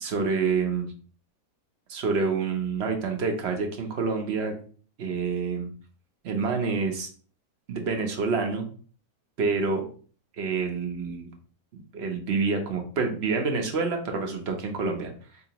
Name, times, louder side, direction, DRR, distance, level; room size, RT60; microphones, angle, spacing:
voice 1, 0.0-0.9 1.9-4.6 5.0-5.7 6.2-7.1 7.7-8.7 9.4-9.8 10.4-11.3 11.9-15.1, right 4 dB, 55° right, 4 dB, 0.9 m, -27 dB
4.3 x 2.8 x 2.8 m, 0.42 s
omnidirectional pair, 1.6 m